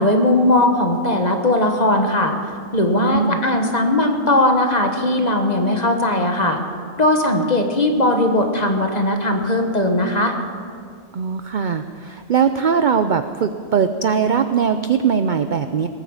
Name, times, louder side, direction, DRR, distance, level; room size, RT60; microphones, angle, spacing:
voice 1, 0.0-2.3 2.7-6.6 7.0-10.4, left 1 dB, 30° left, 4 dB, 1.3 m, -18 dB
voice 2, 3.0-3.4 11.1-15.9, right 6 dB, 55° right, 9 dB, 0.5 m, -20 dB
19.5 x 9.2 x 7.2 m, 2.2 s
omnidirectional pair, 1.4 m